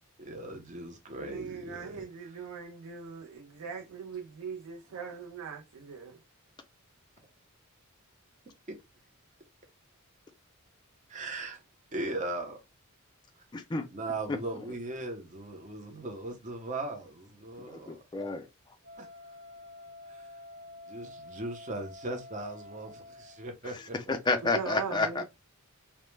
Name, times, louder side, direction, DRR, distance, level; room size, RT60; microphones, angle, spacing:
voice 1, 0.2-2.3 8.7-8.8 11.1-11.6 11.9-12.6 13.9-18.0 19.0-19.1 20.1-20.3 20.9-24.1, right 2 dB, 35° right, 0.6 m, -39 dB
voice 2, 1.2-6.2 24.5-25.2, right 6 dB, 90° right, 0.5 m, -40 dB
voice 3, 13.5-13.8 14.3-14.4 17.6-18.5 24.1-25.2, left 3 dB, 20° left, 0.3 m, -30 dB
Wind instrument woodwind instrument, 18.8-23.5, left 2 dB, 60° right, 0.8 m, -49 dB
2.1 x 2.0 x 3.1 m
head